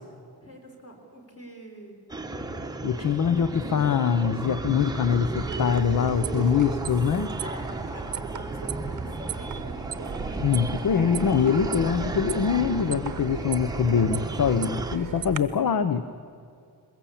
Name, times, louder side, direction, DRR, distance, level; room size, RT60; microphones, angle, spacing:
voice 1, 0.4-2.0 6.0-6.8 7.4-10.7, right 1 dB, 35° left, 1 dB, 4.3 m, -43 dB
sound 1, 2.1-15.0, right 2 dB, 10° right, 1.0 m, -33 dB
voice 2, 2.8-7.3 10.4-16.0, left 7 dB, 55° left, 11 dB, 0.8 m, -24 dB
sound 2, 5.4-15.4, right 8 dB, 50° right, 0.9 m, -37 dB
22.0 x 21.0 x 8.6 m, 2.3 s
wide cardioid pair, 170°, 40 cm